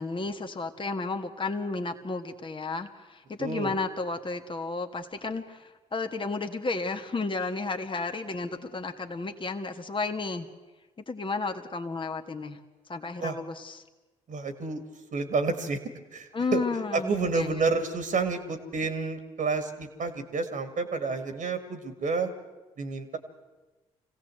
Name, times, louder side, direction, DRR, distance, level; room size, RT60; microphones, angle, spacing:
voice 1, 0.0-10.5 11.1-12.6 12.9-13.8 16.3-17.5, left 3 dB, 30° left, 5 dB, 1.7 m, -32 dB
voice 2, 3.4-3.7 13.2-13.4 14.3-14.8 15.1-15.8 16.1-16.6 16.9-22.3 22.8-23.2, right 4 dB, 55° right, 8 dB, 2.2 m, -29 dB
24.0 x 16.5 x 7.8 m, 1.2 s
hypercardioid pair, 45°, 16 cm